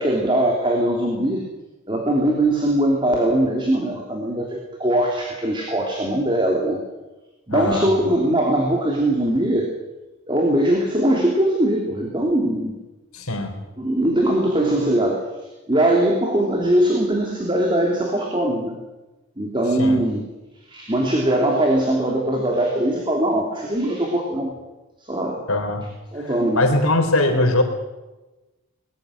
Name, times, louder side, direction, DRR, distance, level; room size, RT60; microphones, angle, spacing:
voice 1, 0.0-1.4 1.9-6.8 7.5-9.7 10.3-12.7 13.8-15.3 15.7-18.8 19.4-20.3 20.7-24.5 25.0-25.4 26.1-26.7, right 1 dB, 20° right, 1 dB, 3.0 m, -21 dB
voice 2, 7.5-7.9 13.1-13.5 19.8-20.0 25.5-25.8 26.2-27.6, left 2 dB, 80° left, 5 dB, 3.9 m, -21 dB
21.0 x 15.5 x 10.0 m, 1.1 s
head